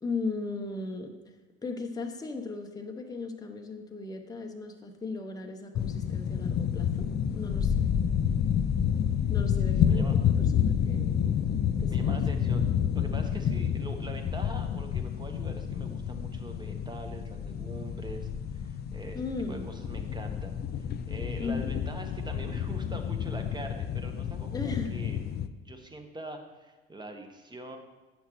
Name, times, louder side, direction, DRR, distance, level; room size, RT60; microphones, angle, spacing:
voice 1, 0.0-1.1 1.6-7.1 7.3-7.9 9.3-11.2 11.8-12.2 19.1-19.7 21.4-21.7 24.5-24.9, left 3 dB, 15° left, 3 dB, 0.8 m, -37 dB
sound 1, 5.8-25.5, left 8 dB, 35° left, 0.4 m, -29 dB
voice 2, 9.6-10.2 11.9-25.2 25.6-27.8, right 2 dB, 15° right, 4 dB, 1.0 m, -43 dB
8.4 x 5.7 x 3.0 m, 1.2 s
hypercardioid pair, 70°, 29 cm